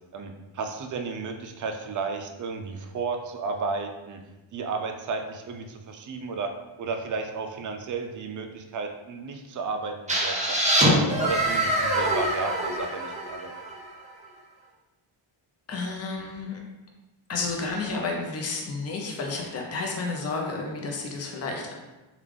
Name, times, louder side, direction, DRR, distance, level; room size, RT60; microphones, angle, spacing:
voice 1, 0.1-4.2 4.5-6.5 6.8-10.6 11.2-13.5, right 4 dB, 40° right, 5 dB, 0.4 m, -33 dB
sound 1, 10.1-13.8, right 1 dB, 15° right, 0.7 m, -24 dB
voice 2, 15.7-16.6 17.3-21.7, left 3 dB, 30° left, 0 dB, 0.6 m, -31 dB
3.3 x 2.4 x 3.5 m, 1.1 s
wide cardioid pair, 95°, 50 cm